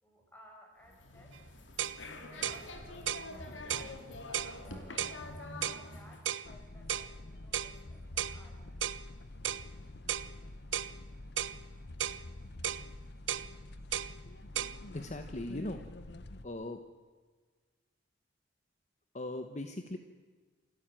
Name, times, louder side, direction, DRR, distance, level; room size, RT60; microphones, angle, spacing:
voice 1, 0.0-1.4 2.1-3.9 4.5-5.2 5.8-8.9, equal, 10° left, 0 dB, 5.4 m, -60 dB
sound 1, 0.8-6.2, left 2 dB, 80° left, 3.0 m, -46 dB
sound 2, 1.3-1.4 1.8-2.0 2.4-2.6 3.1-3.3 3.7-3.9 4.3-4.5 5.0-5.2 5.6-5.8 6.3-6.5 6.9-7.1 7.5-7.7 8.2-8.4 8.8-9.0 9.4-9.7 10.1-10.3 10.7-10.9 11.4-11.6 12.0-12.2 12.6-12.8 13.3-13.5 13.9-14.1 14.6-14.8, right 10 dB, 85° right, 0.8 m, -34 dB
sound 3, 6.4-16.5, left 1 dB, 60° left, 1.0 m, -48 dB
voice 2, 14.9-16.1 16.4-16.8 19.1-20.0, left 1 dB, 40° left, 7 dB, 1.1 m, -39 dB
28.5 x 12.5 x 9.0 m, 1.5 s
head